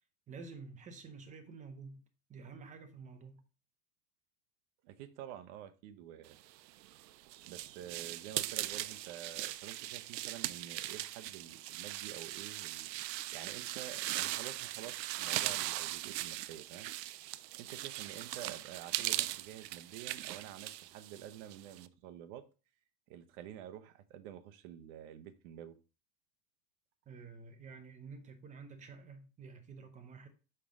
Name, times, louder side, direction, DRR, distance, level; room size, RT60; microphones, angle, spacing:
voice 1, 0.3-2.0 2.3-3.4 27.1-30.3, right 4 dB, 15° right, 0.7 m, -50 dB
voice 2, 4.8-6.4 7.5-16.9 17.5-22.4 23.1-25.8, right 11 dB, 45° right, 0.8 m, -49 dB
sound 1, 6.7-21.9, right 15 dB, 90° right, 0.6 m, -39 dB
5.5 x 5.3 x 3.7 m
supercardioid pair, 145°, 49 cm